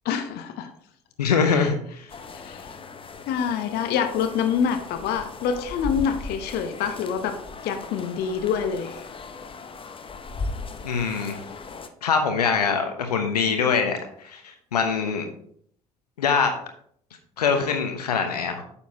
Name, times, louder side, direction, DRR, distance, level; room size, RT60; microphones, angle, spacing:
voice 1, 0.0-0.7 1.5-1.7 2.3-2.7 3.3-7.4 7.6-9.0, left 7 dB, 55° left, 8 dB, 0.8 m, -26 dB
voice 2, 1.2-2.1 10.8-11.4 12.0-15.3 16.2-16.5 17.4-18.6, left 6 dB, 80° left, 5 dB, 0.9 m, -23 dB
sound 1, 2.1-11.9, left 3 dB, 25° left, 0.8 m, -38 dB
9.1 x 7.1 x 2.8 m, 0.63 s
figure-of-eight pair, 55°, 20 cm